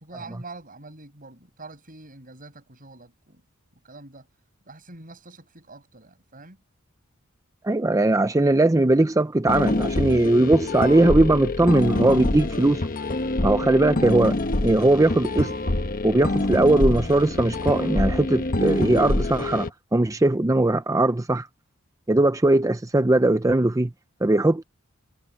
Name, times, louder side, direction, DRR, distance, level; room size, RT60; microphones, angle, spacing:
voice 1, 0.0-3.4 3.7-4.3 4.7-6.6, right 3 dB, 40° right, 7.8 m, -45 dB
voice 2, 7.6-12.8 13.4-15.5 16.0-21.5 22.1-23.9 24.2-24.6, right 2 dB, 15° right, 0.6 m, -20 dB
sound 1, 9.5-19.7, left 2 dB, 45° left, 1.1 m, -26 dB
head